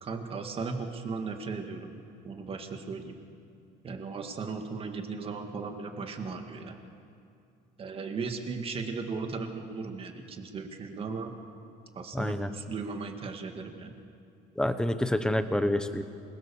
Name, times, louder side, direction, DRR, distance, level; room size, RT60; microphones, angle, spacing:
voice 1, 0.0-2.0 2.2-3.2 3.8-6.8 7.8-11.3 11.9-13.9, right 4 dB, 30° right, 5 dB, 2.1 m, -37 dB
voice 2, 12.1-12.5 14.6-16.0, left 1 dB, 5° left, 9 dB, 1.0 m, -27 dB
27.5 x 22.0 x 7.1 m, 2.5 s
cardioid pair, 160°, 18 cm